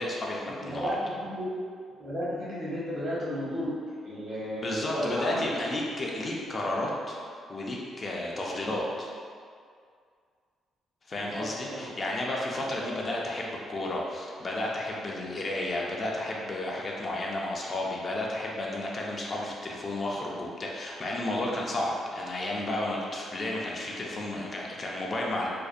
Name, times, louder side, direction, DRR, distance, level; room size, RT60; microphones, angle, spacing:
voice 1, 0.0-0.9 4.6-7.2 7.5-9.1 11.1-25.5, left 1 dB, 35° left, -3 dB, 0.3 m, -32 dB
voice 2, 0.6-1.4 2.0-3.7 4.0-5.5 8.6-8.7 11.1-11.9 12.8-12.9, equal, 50° right, -8 dB, 1.0 m, -34 dB
2.5 x 2.1 x 2.3 m, 2.1 s
cardioid pair, 90°, 0 cm